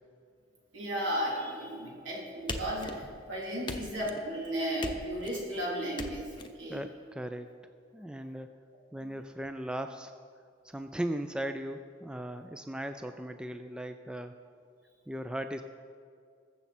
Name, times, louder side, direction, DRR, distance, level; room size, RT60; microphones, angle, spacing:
voice 1, 0.7-6.8, equal, 85° right, -4 dB, 3.3 m, -34 dB
sound 1, 2.5-3.3 3.7-4.3 4.8-5.4 6.0-6.5, left 2 dB, 25° left, 0.8 m, -39 dB
voice 2, 6.7-7.5 7.9-8.6 8.9-10.1 10.6-14.4 15.1-15.6, right 1 dB, 5° right, 7 dB, 0.3 m, -37 dB
21.5 x 7.1 x 4.3 m, 2.2 s
head